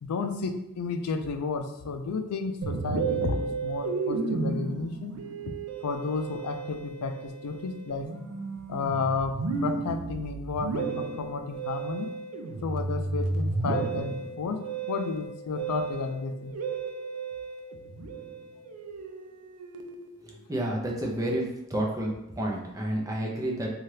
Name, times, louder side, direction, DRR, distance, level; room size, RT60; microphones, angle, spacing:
voice 1, 0.0-5.1 5.5-8.1 8.7-9.3 9.6-12.1 12.6-16.5 20.3-20.4, left 4 dB, 85° left, 6 dB, 0.4 m, -32 dB
Musical instrument, 2.6-20.2, right 4 dB, 80° right, 0.4 m, -33 dB
voice 2, 20.2-23.7, right 1 dB, 15° right, -2 dB, 0.5 m, -30 dB
2.8 x 2.3 x 3.2 m, 0.85 s
head